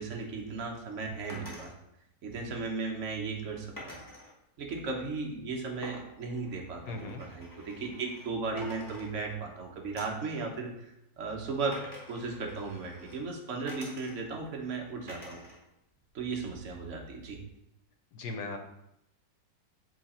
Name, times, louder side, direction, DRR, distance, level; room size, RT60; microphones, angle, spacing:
voice 1, 0.0-1.7 2.2-4.0 4.6-10.9 11.2-11.8 12.1-15.4 16.1-17.4, right 4 dB, 50° right, 0 dB, 1.2 m, -36 dB
sound 1, 1.3-1.7 3.8-4.3 5.8-8.3 8.6-9.5 10.0-10.3 11.7-13.2 13.7-14.4 15.1-15.6 16.0-16.8, left 1 dB, 10° left, 1.2 m, -47 dB
voice 2, 6.9-7.2 18.1-18.6, left 3 dB, 65° left, 4 dB, 1.3 m, -38 dB
7.6 x 3.1 x 4.3 m, 0.81 s
omnidirectional pair, 2.0 m